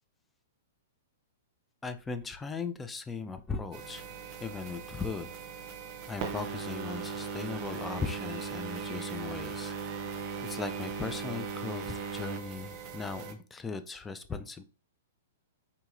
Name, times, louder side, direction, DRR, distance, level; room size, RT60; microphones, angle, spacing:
voice 1, 1.8-4.0 4.4-5.3 6.1-9.7 10.4-14.6, left 4 dB, 15° left, 9 dB, 0.4 m, -38 dB
sound 1, 3.7-13.3, right 6 dB, 40° right, 0.7 m, -38 dB
3.8 x 2.8 x 2.4 m, 0.34 s
hypercardioid pair, 110°, 0 cm